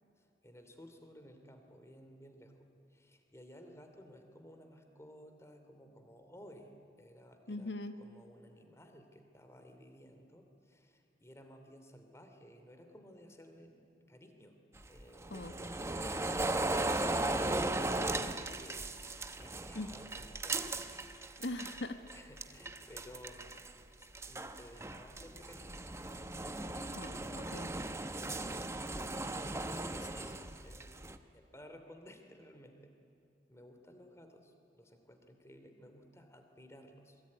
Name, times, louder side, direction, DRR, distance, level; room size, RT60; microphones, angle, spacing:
voice 1, 0.2-7.7 8.0-14.6 14.9-18.8 19.2-20.7 21.1-21.3 22.1-25.8 29.5-30.4 30.6-30.9 31.3-32.9 33.5-37.2, equal, 15° left, 6 dB, 2.8 m, -56 dB
voice 2, 7.5-8.0 15.3-15.5 19.7-19.9 21.4-22.0 26.9-27.7, left 2 dB, 75° left, 8 dB, 1.4 m, -41 dB
sound 1, 14.8-21.8 22.1-23.7 24.0-31.2, right 2 dB, 15° right, 1.0 m, -37 dB
27.5 x 22.0 x 9.7 m, 2.6 s
head